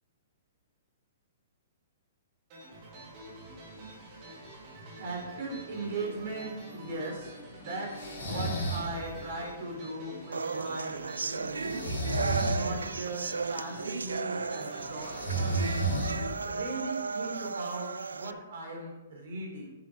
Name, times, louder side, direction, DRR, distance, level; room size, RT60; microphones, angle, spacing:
sound 1, 2.5-17.3, equal, 40° right, 3.8 m, -47 dB
voice 1, 5.0-11.8 12.4-15.2 16.1-19.7, right 2 dB, 60° right, -1 dB, 4.2 m, -38 dB
Breathing, 8.0-8.9 11.6-12.6 15.0-16.4, right 1 dB, 75° left, 3.1 m, -31 dB
sound 2, 10.3-18.3, right 4 dB, 80° right, 0.4 m, -35 dB
11.0 x 7.5 x 5.2 m, 1.1 s
figure-of-eight pair, 115°, 0 cm